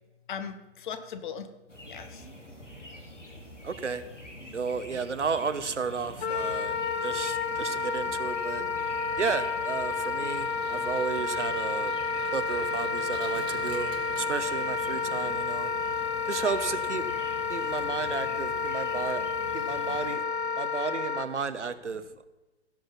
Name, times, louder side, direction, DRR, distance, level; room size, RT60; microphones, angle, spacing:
voice 1, 0.3-1.5 1.8-2.2 6.7-6.9 15.8-16.1, left 7 dB, 45° left, 10 dB, 1.2 m, -39 dB
sound 1, 1.7-20.1, equal, 90° left, 1.8 m, -46 dB
voice 2, 3.6-4.0 4.5-6.8 7.0-8.6 9.2-11.9 12.3-15.7 16.3-17.1 17.5-19.3 19.5-20.2 20.6-22.2, right 5 dB, 80° right, 12 dB, 1.0 m, -33 dB
Wind instrument woodwind instrument, 6.2-21.3, left 4 dB, 65° left, 1.0 m, -30 dB
Engine, 10.0-15.7, right 9 dB, 15° right, 0.7 m, -50 dB
16.0 x 6.4 x 5.5 m, 1.1 s
figure-of-eight pair, 115°, 35 cm